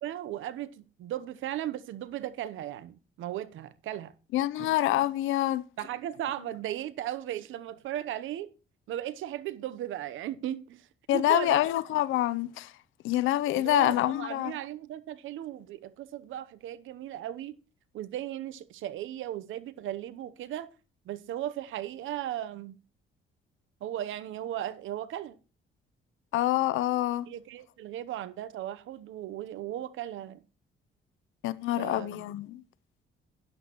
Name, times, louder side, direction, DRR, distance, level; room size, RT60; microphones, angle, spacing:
voice 1, 0.0-4.1 4.6-4.8 5.8-8.5 8.9-10.9 11.1-11.6 13.5-17.5 17.9-20.7 21.1-22.8 23.8-25.4 27.3-30.4 31.8-32.2, right 12 dB, 80° right, 0.8 m, -36 dB
voice 2, 4.3-5.6 11.1-12.7 13.0-14.5 26.3-27.3 31.4-32.6, left 15 dB, 85° left, 0.6 m, -26 dB
12.5 x 10.5 x 3.0 m
cardioid pair, 90°, 20 cm